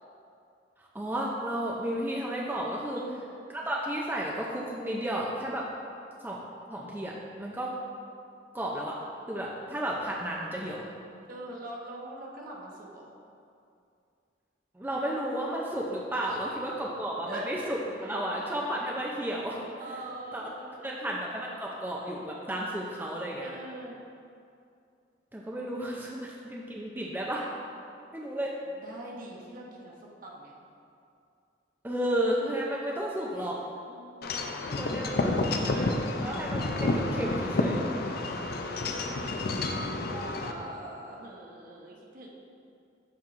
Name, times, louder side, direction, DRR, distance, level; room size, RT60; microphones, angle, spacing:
voice 1, 0.9-3.0 3.5-5.7 6.2-6.4 6.7-7.1 7.4-7.7 8.5-9.0 9.3-10.8 14.7-19.6 20.3-20.4 20.8-23.5 25.3-27.5 28.1-28.5 31.8-33.6 34.7-35.9 36.2-37.8, right 1 dB, 10° right, -3 dB, 0.5 m, -32 dB
voice 2, 11.3-13.1 16.2-16.4 17.3-17.7 18.0-18.3 19.8-21.1 23.4-24.0 28.7-30.5 33.2-33.5 33.9-35.1 38.1-42.3, right 1 dB, 50° right, -2 dB, 1.0 m, -44 dB
Wind chime / Wind, 34.2-40.5, left 2 dB, 60° left, 0.5 m, -30 dB
12.5 x 4.5 x 2.5 m, 2.5 s
head